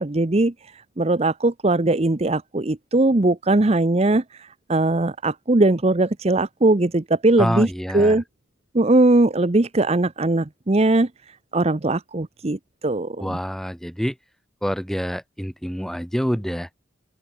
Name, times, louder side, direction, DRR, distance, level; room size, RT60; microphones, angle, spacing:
voice 1, 0.0-7.7 7.9-8.2 8.7-11.1 11.5-13.4, right 2 dB, 30° right, 0.7 m, -20 dB
voice 2, 7.4-8.2 13.2-14.2 14.6-16.7, equal, ahead, 3.0 m, -26 dB
open air
head